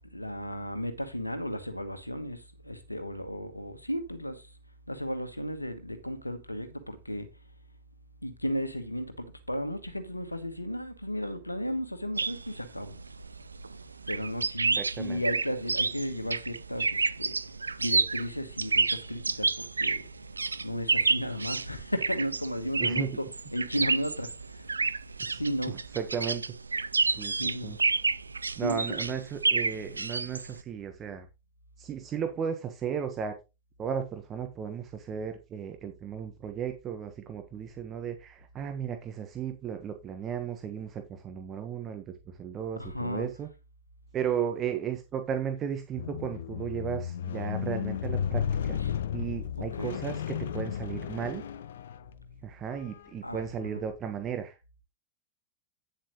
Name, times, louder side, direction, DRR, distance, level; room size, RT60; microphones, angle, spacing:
voice 1, 0.0-4.5 4.9-7.3 8.2-13.0 14.1-17.3 17.8-20.0 20.6-23.2 23.5-24.7 25.3-25.8 27.0-27.1 27.4-27.8 28.6-29.1 42.8-43.3 48.9-49.0 49.8-50.0 53.2-53.4 53.7-53.8, equal, 85° left, 1.2 m, -34 dB
sound 1, 12.2-30.6, right 4 dB, 80° right, 0.4 m, -30 dB
voice 2, 14.8-15.2 22.8-23.2 25.3-26.5 27.2-27.8 28.6-31.3 31.8-33.4 33.8-43.5 44.1-48.8 49.1-51.4 52.4-54.6, right 8 dB, 30° right, 1.3 m, -35 dB
Squeak, 46.0-52.3 53.1-53.2, left 8 dB, 60° left, 0.6 m, -33 dB
9.5 x 7.4 x 3.1 m
figure-of-eight pair, 90°, 0 cm